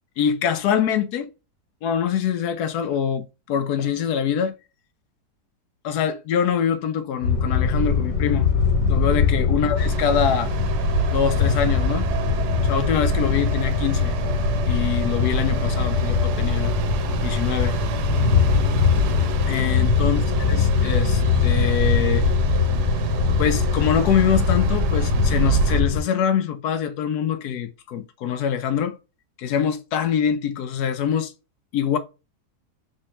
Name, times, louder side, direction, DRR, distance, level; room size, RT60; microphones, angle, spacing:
voice 1, 0.2-1.3 1.8-4.6 5.8-8.5 8.9-10.5 11.1-12.1 12.6-14.2 14.7-16.7 17.2-17.7 19.5-20.2 20.5-22.3 23.4-29.0 29.4-31.3 31.7-32.0, left 8 dB, 75° left, 1.1 m, -24 dB
sound 1, 7.2-26.0, left 5 dB, 60° left, 1.6 m, -22 dB
sound 2, 9.8-25.8, right 7 dB, 90° right, 1.2 m, -28 dB
3.2 x 3.1 x 2.8 m
omnidirectional pair, 1.7 m